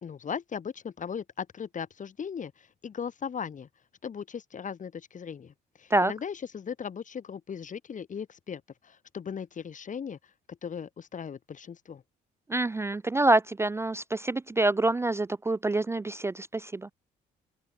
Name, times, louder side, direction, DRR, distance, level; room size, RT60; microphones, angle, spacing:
voice 1, 0.0-3.7 4.0-10.2 10.6-12.0, left 7 dB, 45° left, 2.0 m, -38 dB
voice 2, 12.5-16.9, right 2 dB, 15° right, 0.4 m, -26 dB
open air
supercardioid pair, 70°, 19 cm